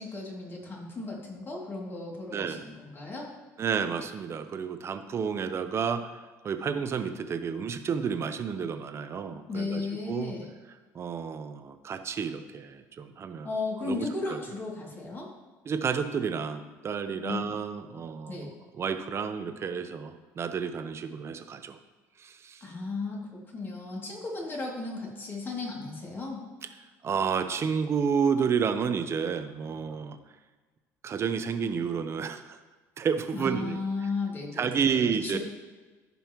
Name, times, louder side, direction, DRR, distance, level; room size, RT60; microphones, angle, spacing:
voice 1, 0.0-3.3 9.5-10.5 13.4-15.3 17.2-17.4 18.3-18.5 22.6-26.4 33.3-35.4, left 3 dB, 30° left, -2 dB, 2.6 m, -35 dB
voice 2, 2.3-2.6 3.6-9.8 10.1-10.3 10.9-13.5 13.8-14.4 15.7-21.8 22.2-22.7 26.6-26.7 27.0-30.2 31.0-32.6 33.0-33.8 34.6-35.4, right 6 dB, 40° right, 9 dB, 0.7 m, -30 dB
14.5 x 5.4 x 3.0 m, 1.3 s
cardioid pair, 105°, 7 cm